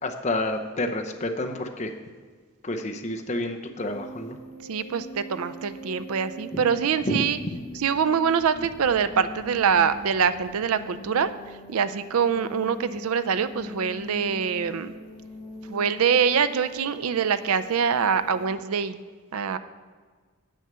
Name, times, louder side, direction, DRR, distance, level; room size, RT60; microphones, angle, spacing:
voice 1, 0.0-1.9 2.6-4.4 6.5-6.7 7.0-7.6, left 1 dB, 30° left, 4 dB, 0.7 m, -29 dB
sound 1, 3.8-18.5, left 1 dB, 10° left, 2.1 m, -42 dB
voice 2, 4.7-7.4 7.8-11.3 11.7-14.9 15.7-19.0 19.3-19.6, right 7 dB, 80° right, 13 dB, 0.5 m, -24 dB
8.8 x 6.4 x 6.8 m, 1.5 s
head